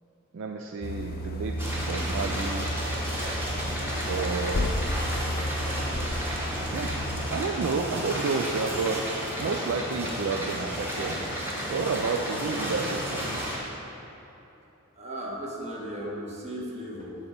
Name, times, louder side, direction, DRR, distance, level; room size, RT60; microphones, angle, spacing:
voice 1, 0.3-2.7 4.1-4.8 6.7-7.0 7.3-9.1 9.4-11.2 11.7-13.4, right 4 dB, 60° right, 3 dB, 0.4 m, -30 dB
sound 1, 0.8-7.3, equal, 45° left, 0.5 m, -32 dB
sound 2, 1.6-13.6, equal, 10° right, 1.2 m, -32 dB
voice 2, 15.0-17.2, equal, 30° right, -3 dB, 1.2 m, -36 dB
7.2 x 4.3 x 6.5 m, 3.0 s
head